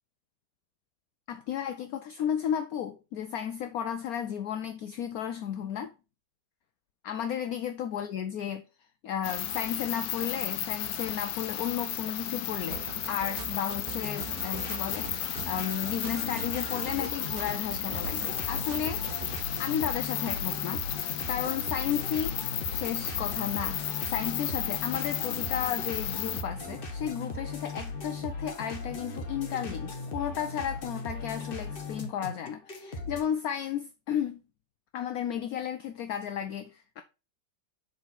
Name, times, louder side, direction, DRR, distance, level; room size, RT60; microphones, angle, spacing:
voice 1, 1.3-5.9 7.0-8.6 9.0-19.2 19.6-20.9 21.3-22.4 22.7-34.4 34.9-37.0, left 9 dB, 70° left, 0.9 m, -33 dB
sound 1, 9.2-26.4, left 11 dB, 90° left, 1.3 m, -34 dB
sound 2, 12.7-19.4, right 10 dB, 65° right, 1.0 m, -43 dB
sound 3, 14.0-33.2, left 3 dB, 35° left, 1.1 m, -38 dB
6.3 x 4.2 x 4.1 m
omnidirectional pair, 1.9 m